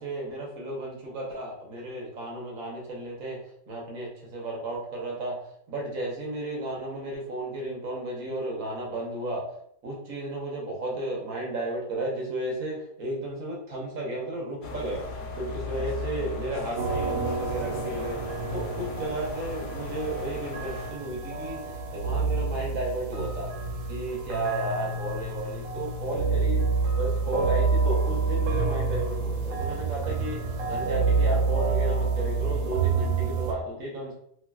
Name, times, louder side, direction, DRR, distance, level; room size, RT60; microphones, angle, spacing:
voice 1, 0.0-3.4 3.7-5.4 5.7-9.4 9.8-15.1 15.3-18.2 18.5-23.5 23.9-34.1, right 2 dB, 55° right, -2 dB, 1.3 m, -33 dB
sound 1, 14.6-20.9, left 3 dB, 70° left, 1.0 m, -37 dB
sound 2, 16.8-33.5, right 4 dB, 85° right, 1.3 m, -28 dB
3.1 x 3.1 x 2.3 m, 0.67 s
omnidirectional pair, 1.9 m